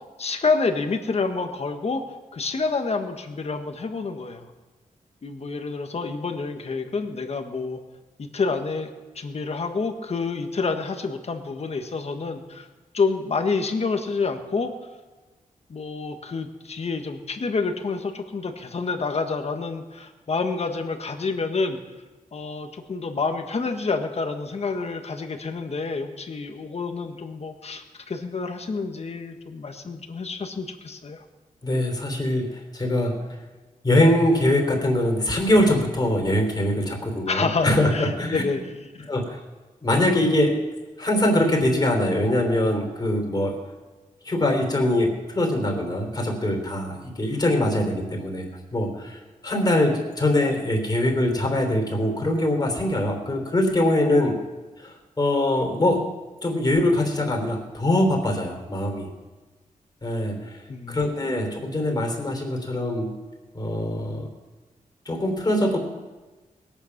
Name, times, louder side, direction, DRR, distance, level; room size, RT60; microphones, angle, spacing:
voice 1, 0.2-2.0 2.3-4.5 5.2-7.8 8.2-12.7 12.9-14.7 15.7-21.8 22.3-31.2 37.3-39.1 60.7-61.0, left 4 dB, 45° left, 6 dB, 1.5 m, -28 dB
voice 2, 31.6-33.2 33.8-38.4 39.1-39.4 39.8-40.6 41.0-43.6 44.2-54.4 54.8-56.0 56.4-59.1 60.0-60.6 60.9-63.1 63.5-64.3 65.0-65.8, left 1 dB, 30° left, 2 dB, 3.4 m, -23 dB
20.5 x 9.0 x 6.0 m, 1.2 s
wide cardioid pair, 115°, 14 cm